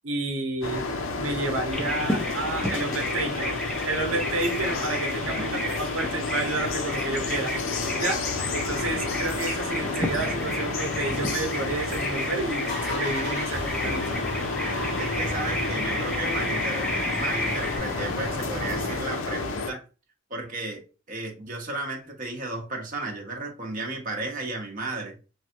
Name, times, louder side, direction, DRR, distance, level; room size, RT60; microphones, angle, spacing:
voice 1, 0.0-0.9 1.2-3.5 3.8-7.5 7.9-14.2, right 3 dB, 85° right, 4 dB, 0.7 m, -30 dB
sound 1, 0.6-19.7, left 3 dB, 85° left, 0.5 m, -31 dB
Bird vocalization bird call bird song, 1.7-17.8, equal, 5° left, 0.5 m, -33 dB
sound 2, 8.3-12.2 12.5-19.0, left 1 dB, 35° left, 1.7 m, -36 dB
voice 2, 15.0-16.9 17.1-19.8 20.3-20.8 21.1-25.2, right 2 dB, 40° right, 0 dB, 0.7 m, -34 dB
3.2 x 2.3 x 2.8 m, 0.33 s
head